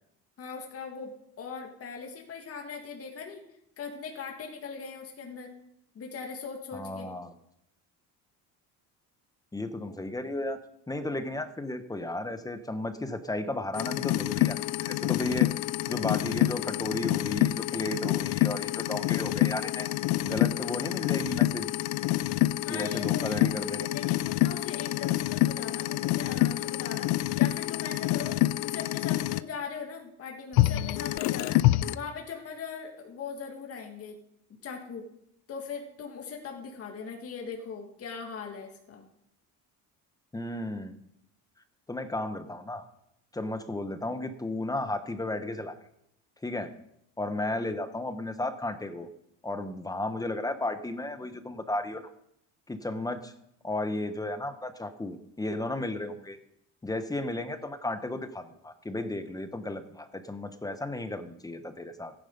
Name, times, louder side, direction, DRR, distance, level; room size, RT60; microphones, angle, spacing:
voice 1, 0.4-3.4 3.8-5.6 6.0-7.1 22.6-23.5 23.9-31.6 31.9-34.2 34.6-35.1 35.5-39.1, left 5 dB, 40° left, 2 dB, 2.0 m, -40 dB
voice 2, 6.7-7.3 9.5-10.6 10.9-15.5 15.9-19.9 20.2-21.7 22.7-23.9 40.3-40.9 41.9-42.8 43.3-45.7 46.4-46.7 47.2-49.1 49.4-52.0 52.7-53.3 53.6-56.4 56.8-62.1, left 2 dB, 10° left, 9 dB, 1.0 m, -34 dB
sound 1, 13.7-29.4 30.5-32.0, left 16 dB, 90° left, 0.6 m, -27 dB
14.0 x 9.6 x 5.4 m, 0.77 s
cardioid pair, 130°, 36 cm